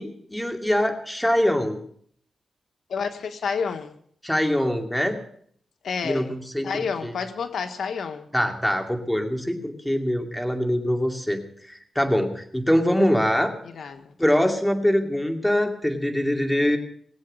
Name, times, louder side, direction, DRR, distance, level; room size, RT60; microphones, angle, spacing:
voice 1, 0.0-1.8 4.2-5.2 6.0-6.7 7.0-7.1 8.3-11.4 11.7-13.5 14.2-16.8, equal, 5° left, 3 dB, 2.5 m, -23 dB
voice 2, 2.9-4.0 5.8-6.3 6.6-8.3 13.6-14.1, left 6 dB, 85° left, 7 dB, 1.3 m, -29 dB
20.5 x 7.9 x 7.6 m, 0.64 s
wide cardioid pair, 95°, 0 cm